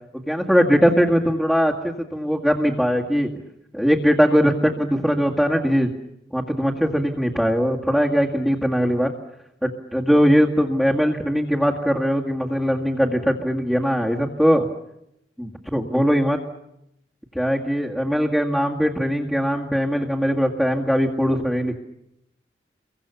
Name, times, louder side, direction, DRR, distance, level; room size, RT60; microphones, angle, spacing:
voice 1, 0.1-3.3 3.7-5.9 6.3-9.1 9.6-14.7 15.4-16.4 17.3-21.8, equal, ahead, -3 dB, 2.0 m, -20 dB
29.5 x 23.5 x 7.0 m, 0.79 s
head